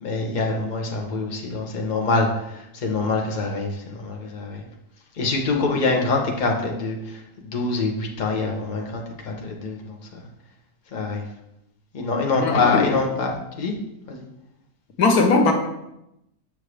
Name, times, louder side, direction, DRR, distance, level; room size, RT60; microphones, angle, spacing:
voice 1, 0.0-2.3 2.7-4.6 5.2-10.0 10.9-11.2 11.9-13.7 14.1-14.2, left 3 dB, 35° left, 0 dB, 1.1 m, -25 dB
voice 2, 12.4-12.8 15.0-15.5, left 3 dB, 80° left, 3 dB, 1.5 m, -19 dB
7.4 x 6.5 x 3.3 m, 0.84 s
omnidirectional pair, 1.6 m